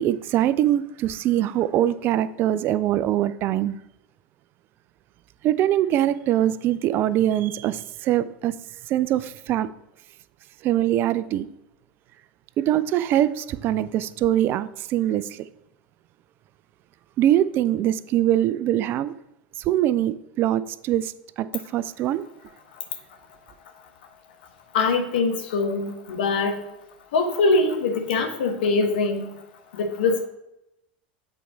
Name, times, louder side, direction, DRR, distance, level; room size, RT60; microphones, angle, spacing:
voice 1, 0.0-3.8 5.4-8.5 8.9-9.7 10.6-11.5 12.6-15.5 17.2-19.2 19.6-22.2, right 12 dB, 40° right, 0.4 m, -23 dB
voice 2, 24.7-26.6 27.1-29.3 29.7-30.3, left 3 dB, 70° left, 1.1 m, -23 dB
8.2 x 4.4 x 4.0 m
figure-of-eight pair, 80°, 5 cm